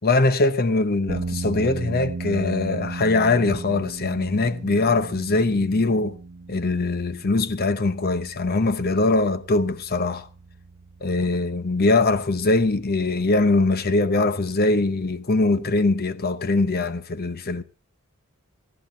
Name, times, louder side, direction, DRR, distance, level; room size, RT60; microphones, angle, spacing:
voice 1, 0.0-6.2 6.5-10.3 11.0-17.6, left 2 dB, 45° left, 0.9 m, -22 dB
sound 1, 1.1-13.6, right 3 dB, 55° right, 0.9 m, -37 dB
19.5 x 14.0 x 4.0 m
head